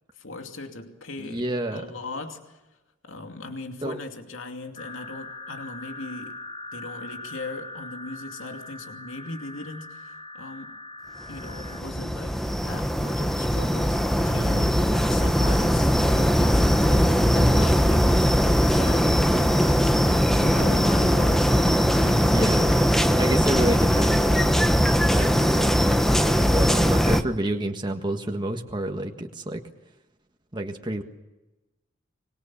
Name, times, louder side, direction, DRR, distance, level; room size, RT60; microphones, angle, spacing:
voice 1, 0.1-2.6 3.0-6.4 6.7-10.8 11.3-18.3 18.7-22.7, left 2 dB, 80° left, 2.6 m, -39 dB
voice 2, 1.2-1.8 3.8-4.0 14.3-14.7 22.2-22.8 23.2-24.6 25.1-29.6 30.5-31.0, right 1 dB, 25° right, 1.6 m, -29 dB
sound 1, 4.8-11.8, left 2 dB, 30° left, 2.4 m, -41 dB
sound 2, 11.3-27.2, equal, ahead, 1.1 m, -20 dB
25.5 x 22.0 x 7.2 m
head